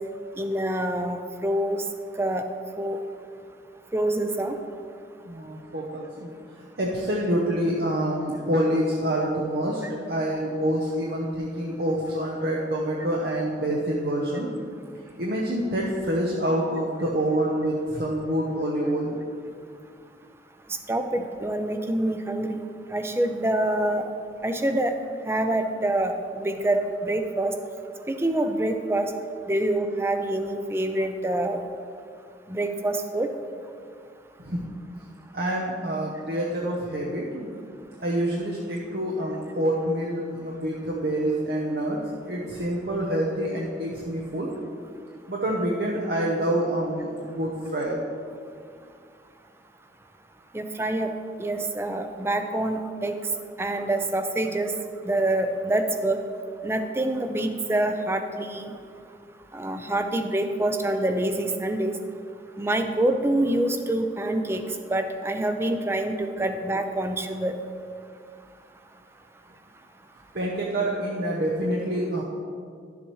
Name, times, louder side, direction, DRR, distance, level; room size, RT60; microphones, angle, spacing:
voice 1, 0.4-1.8 2.2-2.5 2.8-3.0 3.9-4.6 20.9-22.6 22.9-24.0 24.4-24.9 25.3-27.5 28.1-29.1 29.5-31.6 32.5-33.3 50.5-51.1 51.4-53.2 53.6-54.7 55.0-56.2 56.6-58.7 59.5-62.0 62.6-64.6 64.9-67.6, right 1 dB, 15° right, 7 dB, 0.5 m, -26 dB
voice 2, 5.2-6.3 6.8-9.8 10.1-14.5 15.2-19.2 34.4-34.7 35.3-37.5 38.0-44.5 45.3-48.0 70.3-72.2, right 1 dB, 60° right, -3 dB, 0.9 m, -27 dB
11.5 x 7.2 x 3.1 m, 2.3 s
head